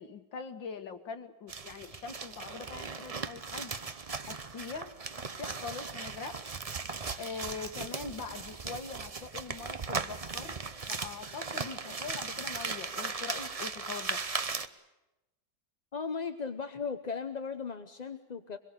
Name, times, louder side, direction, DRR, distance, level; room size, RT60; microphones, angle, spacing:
voice 1, 0.0-3.7 4.3-4.9 5.4-6.4 7.2-10.6 10.9-14.2, left 5 dB, 80° left, 7 dB, 2.4 m, -42 dB
sound 1, 1.5-14.7, right 4 dB, 40° right, 0.5 m, -38 dB
voice 2, 15.9-18.6, left 5 dB, 35° left, 9 dB, 0.7 m, -37 dB
24.5 x 22.0 x 8.2 m, 1.0 s
omnidirectional pair, 2.0 m